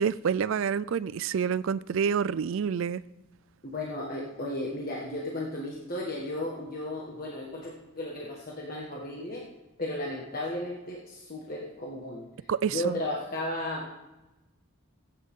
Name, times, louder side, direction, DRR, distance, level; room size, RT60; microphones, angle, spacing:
voice 1, 0.0-3.0 12.5-13.0, right 7 dB, 60° right, 0.3 m, -28 dB
voice 2, 3.6-9.4 9.8-12.3 12.7-13.9, left 1 dB, 40° left, 1.5 m, -34 dB
16.5 x 8.9 x 3.7 m
head